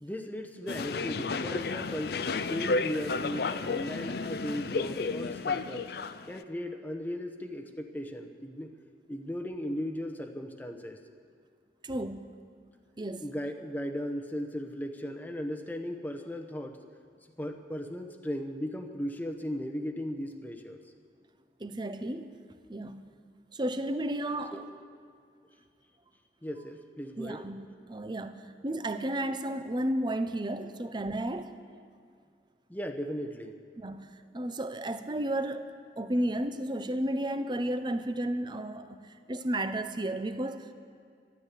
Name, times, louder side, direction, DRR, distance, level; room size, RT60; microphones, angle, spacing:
voice 1, 0.0-5.9 6.3-8.8 9.1-11.0 13.2-16.8 17.4-20.8 24.5-24.6 24.9-25.0 26.4-27.5 32.7-33.6, equal, 10° left, 4 dB, 0.9 m, -37 dB
sound 1, 0.7-6.4, left 4 dB, 60° left, 0.5 m, -32 dB
voice 2, 11.8-12.3 13.0-13.3 21.6-22.4 22.7-23.1 23.5-24.7 27.2-31.5 33.8-35.7 36.0-40.7, right 1 dB, 25° right, 10 dB, 0.7 m, -33 dB
13.0 x 12.0 x 8.3 m, 2.2 s
head